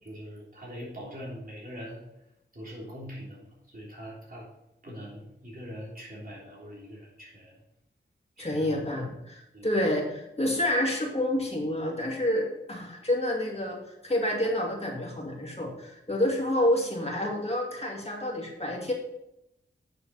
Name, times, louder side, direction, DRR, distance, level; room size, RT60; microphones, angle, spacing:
voice 1, 0.0-2.0 2.5-4.5 4.8-7.6 8.4-8.8 9.5-10.0, equal, 50° right, -5 dB, 3.5 m, -42 dB
voice 2, 8.4-18.9, left 1 dB, 30° left, -1 dB, 2.2 m, -28 dB
9.0 x 6.7 x 4.2 m, 0.85 s
wide cardioid pair, 85°, 20 cm